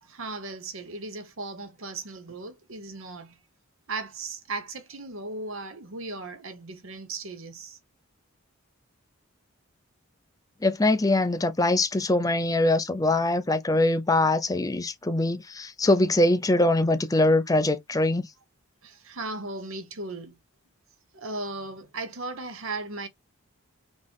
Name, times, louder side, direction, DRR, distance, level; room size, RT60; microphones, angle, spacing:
voice 1, 0.0-3.4 3.9-7.8 18.8-20.4 21.1-23.1, right 3 dB, 70° right, 1.0 m, -37 dB
voice 2, 10.6-18.3, left 2 dB, 15° left, 0.5 m, -23 dB
4.1 x 3.1 x 3.5 m
head